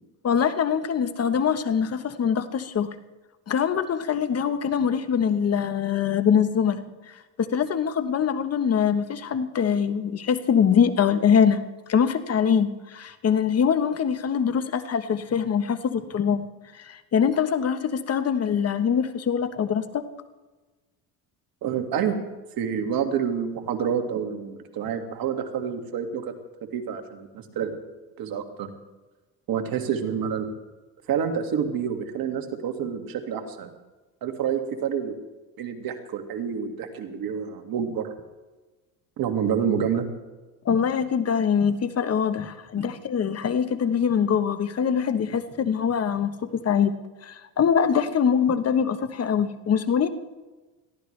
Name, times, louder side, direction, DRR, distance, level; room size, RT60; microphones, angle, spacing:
voice 1, 0.2-2.9 3.5-6.8 7.4-11.6 11.9-16.5 16.7-20.0 40.6-46.9 47.2-50.1, left 7 dB, 35° left, 11 dB, 1.1 m, -23 dB
voice 2, 21.6-22.2 22.6-26.3 26.7-27.7 28.2-28.7 29.5-30.5 31.1-33.7 34.2-35.1 35.6-38.1 39.2-40.1, right 7 dB, 55° right, 5 dB, 2.1 m, -28 dB
21.5 x 15.0 x 3.3 m, 1.2 s
supercardioid pair, 95°, 41 cm